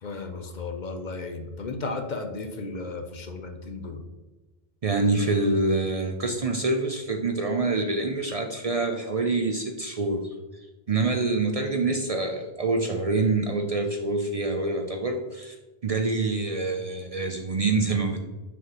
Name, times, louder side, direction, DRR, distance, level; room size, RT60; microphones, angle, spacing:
voice 1, 0.0-4.0, left 3 dB, 50° left, 5 dB, 0.7 m, -34 dB
voice 2, 4.8-10.3 10.9-15.6 15.8-18.2, right 3 dB, 45° right, 3 dB, 0.5 m, -26 dB
6.0 x 5.7 x 2.9 m, 1.2 s
omnidirectional pair, 1.0 m